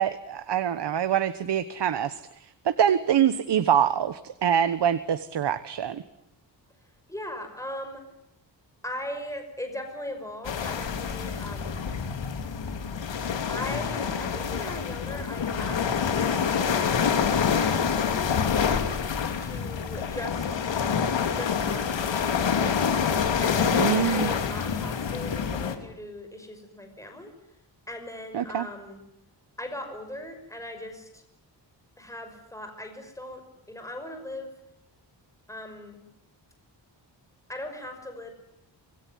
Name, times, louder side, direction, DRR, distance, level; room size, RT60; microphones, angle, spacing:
voice 1, 0.0-2.2 2.6-6.0 23.8-24.3 28.3-28.7, right 9 dB, 70° right, 11 dB, 1.4 m, -24 dB
voice 2, 7.1-8.0 8.8-11.9 13.5-18.2 19.4-20.6 21.2-22.8 23.4-27.3 27.9-29.0 29.6-31.2 32.0-33.4 33.7-34.5 35.5-36.0 37.5-38.3, left 1 dB, 5° left, 5 dB, 5.7 m, -39 dB
sound 1, 10.4-25.8, left 6 dB, 85° left, 3.4 m, -27 dB
26.0 x 22.5 x 9.6 m, 0.83 s
wide cardioid pair, 155°, 43 cm